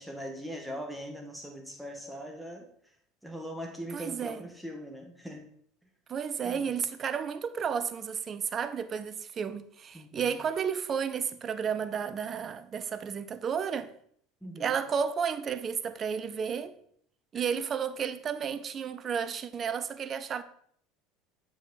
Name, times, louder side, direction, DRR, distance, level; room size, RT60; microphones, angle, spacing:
voice 1, 0.0-2.7 3.2-5.5 6.4-6.7 9.9-10.4 14.4-14.8, equal, 5° right, 1.8 m, -41 dB
voice 2, 3.9-4.4 6.1-13.9 14.6-16.7 17.3-20.4, right 7 dB, 40° right, 0.6 m, -32 dB
7.8 x 5.1 x 4.0 m
hypercardioid pair, 75°, 0 cm